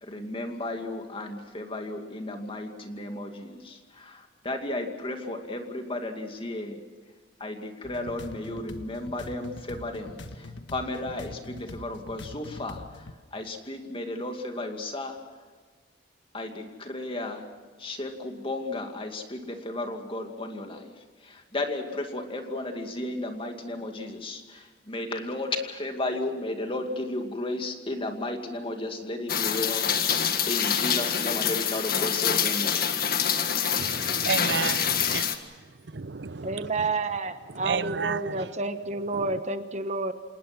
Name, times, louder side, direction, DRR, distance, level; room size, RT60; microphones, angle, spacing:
voice 1, 0.0-6.8 7.4-15.2 16.3-17.4 17.8-20.9 21.2-29.9 30.4-33.0, left 2 dB, 30° left, 2.4 m, -34 dB
sound 1, 7.8-13.1, left 2 dB, 80° left, 1.5 m, -43 dB
Rain, 29.3-35.4, left 8 dB, 55° left, 1.8 m, -26 dB
voice 2, 33.8-35.3 35.9-36.6 37.5-38.5 39.1-39.4, right 5 dB, 70° right, 0.7 m, -32 dB
voice 3, 36.4-40.1, right 3 dB, 40° right, 1.3 m, -30 dB
28.0 x 19.5 x 6.2 m
head